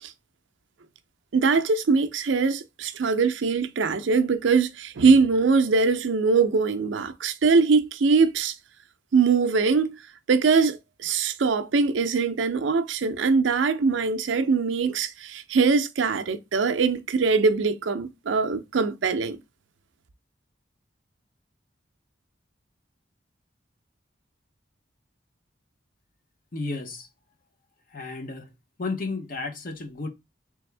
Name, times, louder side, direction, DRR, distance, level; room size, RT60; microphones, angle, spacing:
voice 1, 1.3-8.5 9.1-10.0 10.3-19.4, right 4 dB, 80° right, 0.5 m, -22 dB
voice 2, 26.5-27.1 27.9-28.5 28.8-30.1, left 3 dB, 45° left, 0.7 m, -32 dB
3.4 x 3.4 x 3.2 m
head